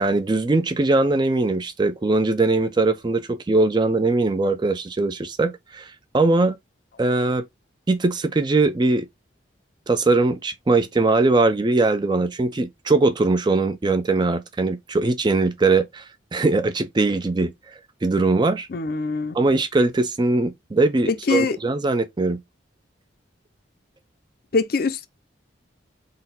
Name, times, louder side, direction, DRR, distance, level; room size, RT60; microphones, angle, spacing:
voice 1, 0.0-6.6 7.0-7.4 7.9-9.1 9.9-16.0 16.3-17.5 18.0-18.7 19.3-22.4, right 3 dB, 25° right, 0.4 m, -21 dB
voice 2, 18.7-19.4 21.1-21.6 24.5-25.1, left 4 dB, 50° left, 0.5 m, -23 dB
3.9 x 2.2 x 3.8 m
head